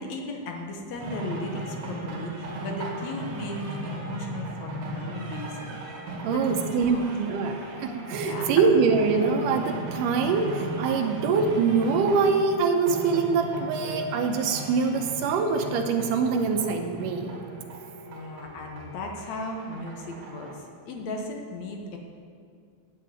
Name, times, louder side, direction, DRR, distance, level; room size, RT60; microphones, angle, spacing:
voice 1, 0.0-5.8 6.3-6.4 6.7-7.0 8.2-8.6 18.1-22.0, left 2 dB, 65° left, 2 dB, 2.1 m, -36 dB
sound 1, 1.0-20.5, right 1 dB, 60° right, 3.0 m, -37 dB
voice 2, 6.2-17.3, right 5 dB, 80° right, 5 dB, 2.3 m, -24 dB
9.0 x 7.3 x 8.8 m, 2.2 s
omnidirectional pair, 3.8 m